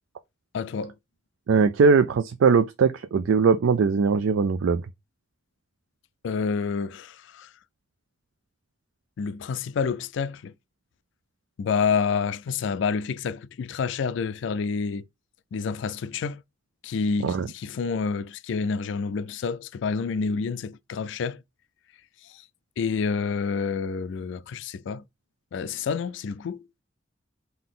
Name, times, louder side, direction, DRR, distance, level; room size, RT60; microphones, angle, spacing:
voice 1, 0.5-0.9 6.2-7.5 9.2-10.5 11.6-15.0 15.5-16.4 16.8-21.4 22.3-22.4 22.8-25.0 25.5-26.7, left 5 dB, 65° left, 0.3 m, -28 dB
voice 2, 1.5-4.8 17.2-17.5, right 5 dB, 85° right, 0.4 m, -20 dB
3.9 x 2.7 x 3.7 m
head